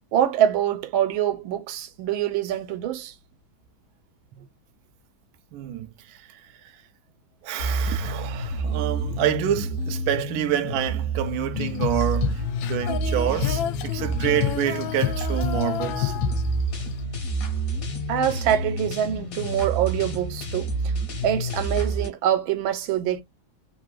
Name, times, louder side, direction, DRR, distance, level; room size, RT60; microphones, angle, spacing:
voice 1, 0.1-3.1 18.1-20.7 21.2-23.2, right 10 dB, 90° right, 1.4 m, -24 dB
voice 2, 5.5-6.2 7.4-16.1, right 11 dB, 75° right, 0.8 m, -27 dB
sound 1, 7.6-22.1, right 2 dB, 55° left, 1.2 m, -29 dB
Female singing, 11.5-17.0, left 10 dB, 80° left, 1.3 m, -28 dB
3.3 x 2.6 x 2.4 m
omnidirectional pair, 2.2 m